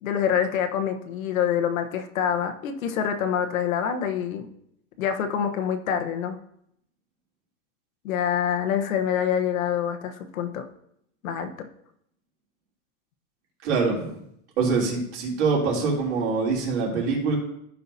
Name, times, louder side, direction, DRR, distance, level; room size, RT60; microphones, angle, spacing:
voice 1, 0.0-4.5 5.0-6.4 8.0-10.7 11.2-11.7, left 8 dB, 75° left, 6 dB, 1.1 m, -26 dB
voice 2, 13.6-14.2 14.6-17.4, right 4 dB, 55° right, -2 dB, 3.3 m, -24 dB
14.5 x 5.6 x 2.8 m, 0.74 s
supercardioid pair, 160°, 42 cm